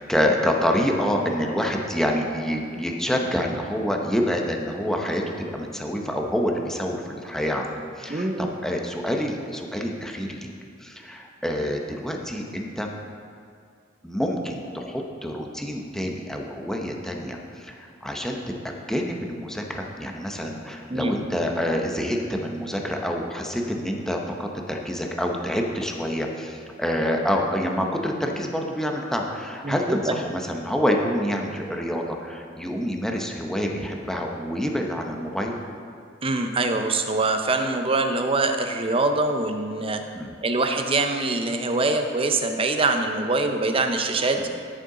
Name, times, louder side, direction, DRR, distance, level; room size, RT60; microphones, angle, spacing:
voice 1, 0.0-10.5 10.8-12.9 14.0-18.4 18.6-35.5 40.1-40.3 44.4-44.5, equal, 5° left, 1 dB, 0.8 m, -27 dB
voice 2, 8.1-8.5 20.9-21.2 29.6-30.2 36.2-40.0 40.4-44.4, right 2 dB, 30° right, 6 dB, 0.6 m, -24 dB
13.0 x 6.9 x 3.8 m, 2.4 s
head